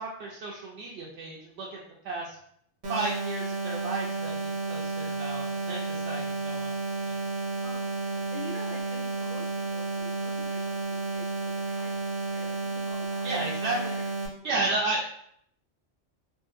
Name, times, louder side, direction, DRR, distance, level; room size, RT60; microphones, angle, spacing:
voice 1, 0.0-1.8 2.0-2.3 2.9-6.7 7.1-7.2 13.2-13.8 14.4-15.1, right 2 dB, 70° right, -4 dB, 0.8 m, -33 dB
sound 1, 2.8-14.3, right 3 dB, 45° right, 0.7 m, -32 dB
voice 2, 7.6-13.3 13.6-14.1, left 2 dB, 40° left, -6 dB, 0.6 m, -46 dB
3.6 x 2.2 x 2.5 m, 0.68 s
omnidirectional pair, 1.3 m